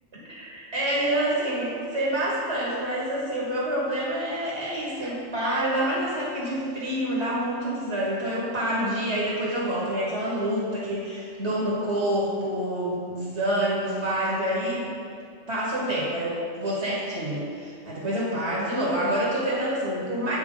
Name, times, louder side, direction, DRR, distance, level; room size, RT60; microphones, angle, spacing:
voice 1, 0.1-14.9 15.5-20.4, right 1 dB, 60° right, -5 dB, 1.6 m, -27 dB
9.0 x 4.4 x 3.7 m, 2.3 s
omnidirectional pair, 1.3 m